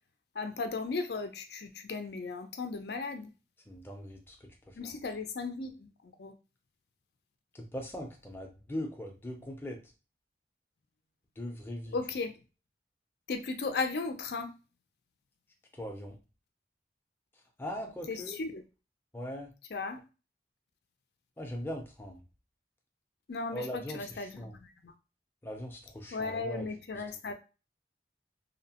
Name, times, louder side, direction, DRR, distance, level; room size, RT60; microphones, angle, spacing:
voice 1, 0.3-3.3 4.8-6.3 11.9-12.3 13.3-14.5 18.1-18.6 19.7-20.0 23.3-23.6 23.9-24.5 24.8-24.9 26.1-27.3, left 4 dB, 65° left, 7 dB, 0.5 m, -36 dB
voice 2, 3.7-4.9 7.5-9.8 11.4-12.0 15.7-16.2 17.6-18.4 19.1-19.5 21.4-22.3 23.5-24.6 25.4-26.7 26.9-27.0, equal, 15° left, 1 dB, 0.5 m, -40 dB
2.8 x 2.0 x 2.8 m, 0.31 s
head